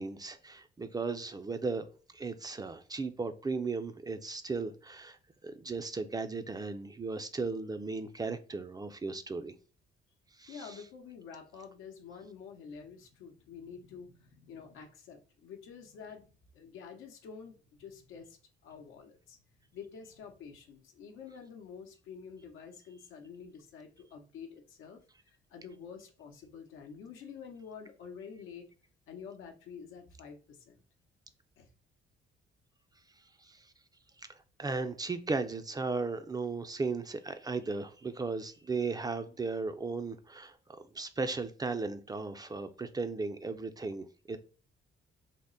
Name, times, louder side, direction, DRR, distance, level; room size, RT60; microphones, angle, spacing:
voice 1, 0.0-1.8 2.1-9.5 10.4-10.7 33.4-33.7 34.2-34.3 34.6-40.6 40.9-44.4, right 4 dB, 20° right, 0.4 m, -36 dB
voice 2, 10.5-19.4 19.7-28.7 29.1-30.8 31.6-31.7, left 6 dB, 85° left, 0.8 m, -48 dB
3.5 x 2.0 x 3.7 m
cardioid pair, 90°, 20 cm